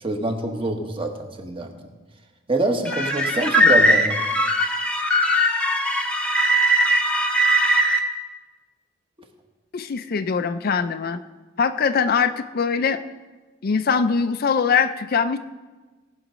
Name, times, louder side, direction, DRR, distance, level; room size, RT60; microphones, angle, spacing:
voice 1, 0.0-1.1 1.4-1.7 2.5-4.2, right 2 dB, 25° right, 3 dB, 1.2 m, -25 dB
sound 1, 2.9-8.0, equal, 5° left, 0.9 m, -20 dB
voice 2, 9.7-11.2 11.6-13.0 13.6-15.4, left 6 dB, 50° left, 11 dB, 0.4 m, -22 dB
17.5 x 6.4 x 5.1 m, 1.3 s
head